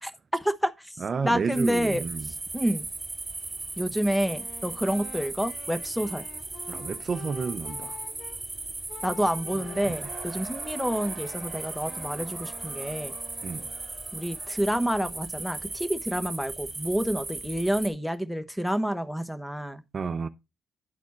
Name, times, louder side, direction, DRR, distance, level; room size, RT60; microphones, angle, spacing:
voice 1, 0.0-0.7 1.2-2.0 2.5-2.9 3.8-6.2 9.0-13.1 14.1-19.8, equal, 5° left, 1.0 m, -28 dB
voice 2, 1.0-2.3 6.7-8.0 9.5-10.1 13.4-13.7 19.9-20.3, right 5 dB, 40° right, 0.5 m, -31 dB
sound 1, 1.5-17.9, right 3 dB, 20° right, 2.3 m, -37 dB
Wind instrument woodwind instrument, 4.2-8.4 8.9-10.3 10.7-13.9, left 4 dB, 75° left, 5.5 m, -47 dB
Cheering / Crowd, 9.2-15.9, right 7 dB, 60° right, 1.0 m, -48 dB
10.5 x 4.2 x 4.3 m
cardioid pair, 90°, 0 cm